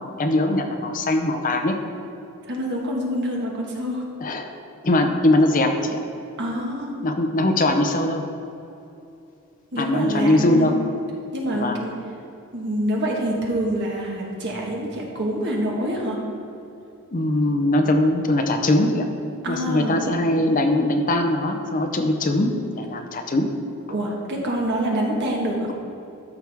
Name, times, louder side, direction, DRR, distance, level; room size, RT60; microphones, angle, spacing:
voice 1, 0.0-1.8 4.2-4.5 4.8-6.0 7.0-8.2 9.8-10.7 11.5-11.8 17.1-19.1 19.5-23.5, left 1 dB, 35° left, 5 dB, 0.6 m, -21 dB
voice 2, 2.4-4.0 6.4-7.0 9.7-10.7 11.3-11.9 12.5-16.2 19.4-20.1 23.9-25.7, equal, 50° right, -2 dB, 1.6 m, -26 dB
13.0 x 5.9 x 3.6 m, 2.7 s
head